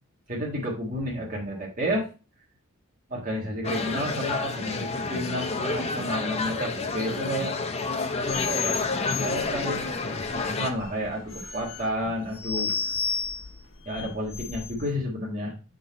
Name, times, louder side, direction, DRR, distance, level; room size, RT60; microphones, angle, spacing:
voice 1, 0.3-2.1 3.1-7.6 8.4-8.8 9.1-13.0 13.8-15.5, equal, 40° right, -3 dB, 1.6 m, -31 dB
sound 1, 3.6-10.7, left 3 dB, 30° left, 0.6 m, -29 dB
sound 2, 8.2-14.9, left 6 dB, 65° left, 1.0 m, -34 dB
6.8 x 4.0 x 4.1 m, 0.33 s
head